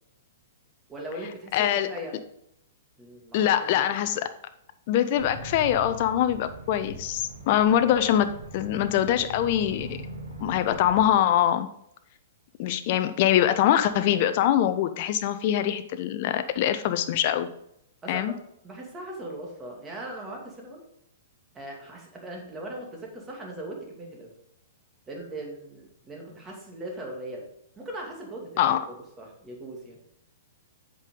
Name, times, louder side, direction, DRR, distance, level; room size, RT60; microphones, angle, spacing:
voice 1, 0.9-2.1 3.0-3.9 7.4-7.5 18.0-18.4 18.6-20.8 21.5-24.3 25.1-27.5 27.8-30.0, right 1 dB, 15° right, -1 dB, 2.3 m, -39 dB
voice 2, 1.5-1.9 3.3-4.3 4.9-8.3 8.5-10.0 10.4-11.7 12.6-17.5 18.1-18.3 28.6-28.8, left 11 dB, 50° left, 10 dB, 0.5 m, -23 dB
sound 1, 5.1-11.1, right 1 dB, 90° right, 2.4 m, -40 dB
8.1 x 5.3 x 3.8 m, 0.75 s
hypercardioid pair, 115°, 0 cm